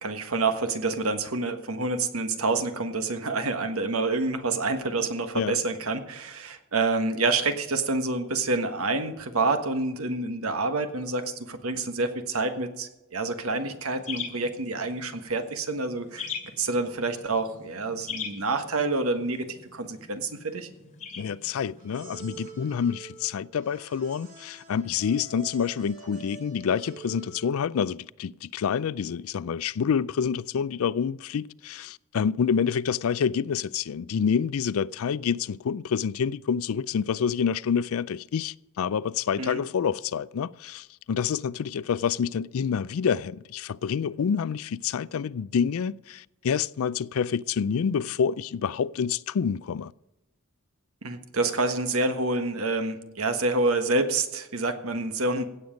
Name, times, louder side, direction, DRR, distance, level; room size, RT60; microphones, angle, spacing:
voice 1, 0.0-16.3 16.6-20.7 39.4-39.6 51.0-55.4, right 3 dB, 80° right, 1.4 m, -28 dB
sound 1, 13.5-22.7, left 6 dB, 35° left, 2.7 m, -42 dB
voice 2, 21.2-49.9, left 7 dB, 70° left, 0.4 m, -27 dB
sound 2, 21.8-27.7, right 5 dB, 40° right, 4.3 m, -47 dB
16.5 x 8.0 x 5.2 m
head